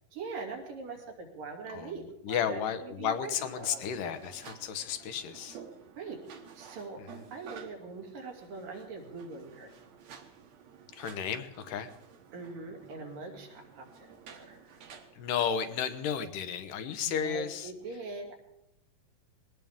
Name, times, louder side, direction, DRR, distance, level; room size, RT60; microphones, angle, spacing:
voice 1, 0.1-4.2 6.0-6.2 6.5-7.0 7.3-9.7 12.3-14.1 14.4-14.8 17.0-18.3, right 3 dB, 85° right, 0 dB, 4.5 m, -42 dB
voice 2, 1.7-5.6 11.0-11.9 15.2-17.7, left 8 dB, 80° left, 10 dB, 2.6 m, -33 dB
sound 1, 3.4-16.1, right 6 dB, 60° right, 2.5 m, -52 dB
21.0 x 18.5 x 3.6 m, 0.84 s
omnidirectional pair, 3.8 m